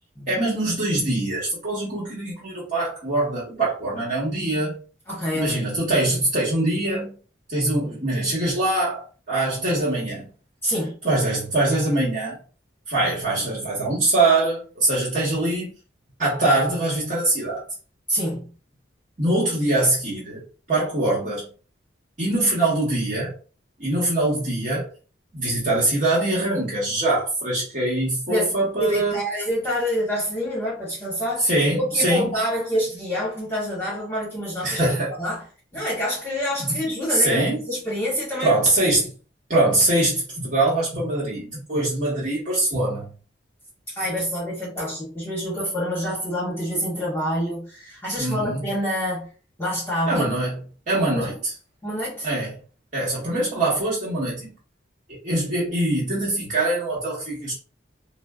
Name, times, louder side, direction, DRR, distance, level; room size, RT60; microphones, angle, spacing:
voice 1, 0.3-4.8 5.3-7.1 7.5-10.3 11.0-12.4 12.9-15.7 16.2-17.6 19.2-20.4 20.7-21.5 22.2-23.3 23.8-24.9 25.3-29.2 31.4-32.4 34.6-35.2 36.7-36.8 37.1-37.6 38.4-39.1 39.5-43.1 48.2-48.6 50.1-50.6 50.9-51.5 52.2-52.5 52.9-54.5 55.1-57.5, right 2 dB, 45° right, 1.3 m, -23 dB
voice 2, 5.1-5.6 10.6-10.9 18.1-18.5 28.3-28.5 28.8-34.8 35.2-35.4 35.7-38.6 43.9-49.3 49.6-50.2 51.1-51.4 51.8-52.3, equal, 15° left, 1.1 m, -27 dB
4.1 x 2.1 x 2.4 m
head